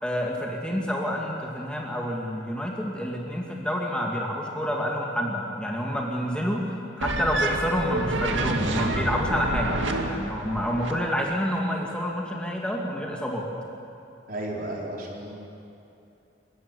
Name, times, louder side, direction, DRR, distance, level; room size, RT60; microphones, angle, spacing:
voice 1, 0.0-9.8 10.1-13.5, equal, 5° left, -1 dB, 2.3 m, -28 dB
sound 1, 7.0-11.0, right 2 dB, 90° right, 2.2 m, -28 dB
voice 2, 14.3-15.3, right 1 dB, 50° right, -2 dB, 4.6 m, -33 dB
27.5 x 16.0 x 9.9 m, 2.8 s
head